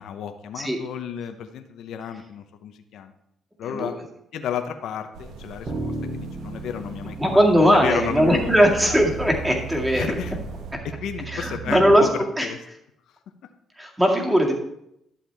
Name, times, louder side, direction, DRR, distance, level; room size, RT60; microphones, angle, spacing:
voice 1, 0.0-3.1 3.6-4.0 4.3-9.0 9.9-10.3 10.8-12.1 12.4-12.6, left 8 dB, 75° left, 7 dB, 0.7 m, -33 dB
voice 2, 3.6-4.0 7.2-10.1 10.7-10.8 11.3-12.1 12.4-12.5 13.8-14.5, equal, 10° right, 0 dB, 2.1 m, -19 dB
sound 1, 5.1-10.7, right 3 dB, 80° right, 1.2 m, -41 dB
sound 2, 5.7-11.9, right 5 dB, 50° right, 2.9 m, -35 dB
11.5 x 7.2 x 3.4 m, 0.78 s
cardioid pair, 95°, 0 cm